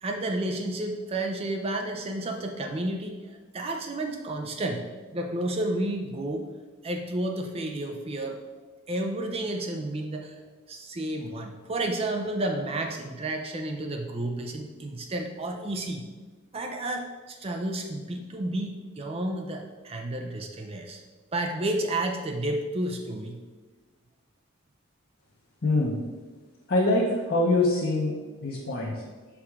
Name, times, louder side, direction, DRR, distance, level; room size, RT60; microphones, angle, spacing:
voice 1, 0.0-6.5 6.8-8.4 8.9-10.4 10.7-16.1 16.5-21.0 21.3-23.4, right 1 dB, 30° right, 4 dB, 0.4 m, -31 dB
voice 2, 25.6-26.0 26.7-28.1 28.4-29.0, left 2 dB, 50° left, -3 dB, 0.8 m, -24 dB
5.7 x 4.7 x 3.6 m, 1.3 s
head